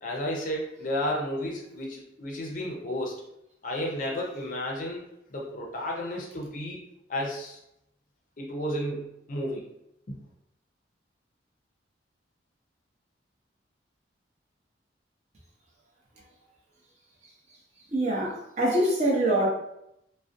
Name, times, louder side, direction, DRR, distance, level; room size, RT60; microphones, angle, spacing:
voice 1, 0.0-3.2 3.6-5.0 5.3-6.8 7.1-7.6 8.4-9.7 10.1-10.2, left 1 dB, 45° left, -1 dB, 0.5 m, -32 dB
voice 2, 17.9-19.5, right 1 dB, 40° right, -4 dB, 0.6 m, -24 dB
2.4 x 2.1 x 2.5 m, 0.80 s
head